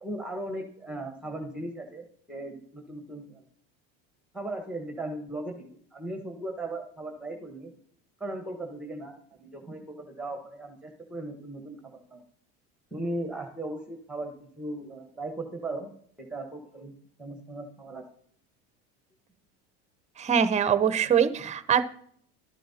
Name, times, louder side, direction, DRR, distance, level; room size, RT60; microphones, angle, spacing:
voice 1, 0.0-3.4 4.3-7.7 8.2-9.1 9.4-12.2 12.9-15.9 16.2-16.9 17.2-18.1, right 1 dB, 5° right, 2 dB, 1.2 m, -37 dB
voice 2, 20.2-21.9, right 8 dB, 20° right, 13 dB, 0.7 m, -23 dB
12.0 x 10.0 x 2.8 m, 0.63 s
supercardioid pair, 120°, 32 cm